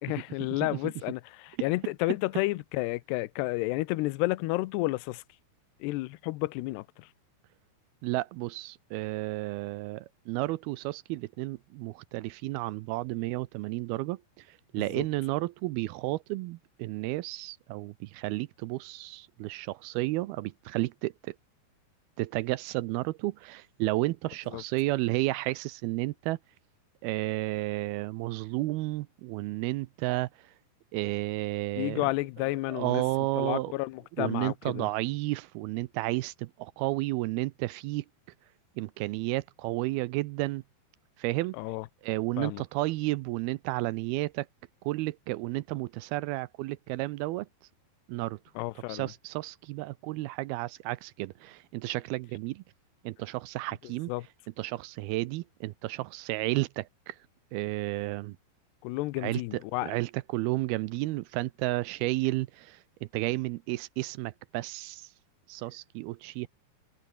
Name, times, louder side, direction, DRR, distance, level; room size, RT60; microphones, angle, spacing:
voice 1, 0.0-5.2 5.8-7.1 14.8-15.0 24.5-24.6 31.8-33.0 33.4-34.9 41.6-41.9 42.4-42.6 48.6-49.1 54.1-54.3 58.8-59.9, left 20 dB, 80° left, 2.8 m, -31 dB
voice 2, 8.0-21.4 22.2-26.4 27.0-30.5 30.9-32.1 32.4-33.7 34.2-38.1 38.8-40.6 41.2-41.6 42.0-44.5 44.8-47.5 48.1-48.4 48.9-52.6 53.0-54.1 54.6-57.2 57.5-58.4 59.2-62.8 63.1-65.1 65.5-66.5, right 19 dB, 85° right, 2.3 m, -32 dB
omnidirectional pair, 5.0 m